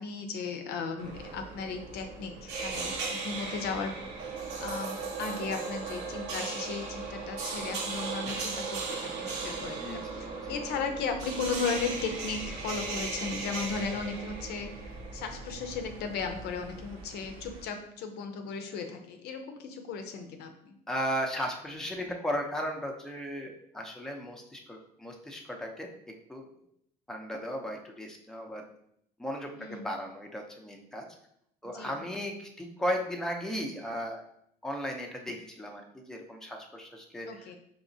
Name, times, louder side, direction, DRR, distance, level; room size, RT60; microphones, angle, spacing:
voice 1, 0.0-3.9 4.6-20.8 29.5-29.9 31.7-31.9 37.3-37.6, left 5 dB, 75° left, 5 dB, 0.6 m, -36 dB
sound 1, 1.0-17.7, right 4 dB, 85° right, 1.0 m, -37 dB
voice 2, 9.8-10.6 20.9-25.9 26.3-26.5 27.1-28.6 29.2-31.1 31.6-34.2 34.6-37.5, equal, 5° left, 1 dB, 0.6 m, -36 dB
4.8 x 2.9 x 2.7 m, 0.72 s
cardioid pair, 110°, 17 cm